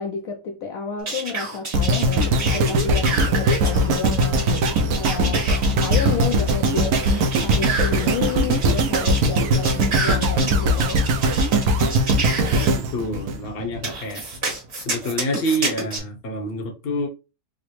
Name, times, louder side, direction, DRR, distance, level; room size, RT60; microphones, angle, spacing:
voice 1, 0.0-4.5 4.9-5.5 5.8-11.0, left 6 dB, 70° left, 1.0 m, -30 dB
sound 1, 1.1-12.7 13.8-16.0, right 3 dB, 45° right, 1.5 m, -29 dB
sound 2, 1.7-13.9 14.5-14.6, right 1 dB, 75° right, 1.0 m, -20 dB
voice 2, 12.8-14.3 14.8-17.1, equal, 45° left, 0.9 m, -27 dB
4.8 x 2.0 x 3.1 m
omnidirectional pair, 1.6 m